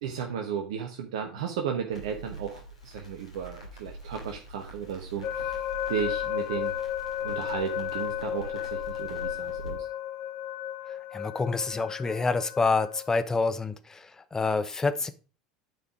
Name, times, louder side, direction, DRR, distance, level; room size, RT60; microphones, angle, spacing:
voice 1, 0.0-5.6 5.9-6.7 7.2-9.9, right 7 dB, 60° right, 4 dB, 1.0 m, -34 dB
Crackle, 1.9-9.7, right 1 dB, 85° left, 2.6 m, -44 dB
sound 1, 5.2-13.2, left 11 dB, 45° left, 0.8 m, -34 dB
voice 2, 11.1-14.0 14.3-15.1, left 4 dB, 15° left, 11 dB, 0.9 m, -27 dB
9.4 x 4.9 x 4.8 m, 0.36 s
figure-of-eight pair, 70°, 3 cm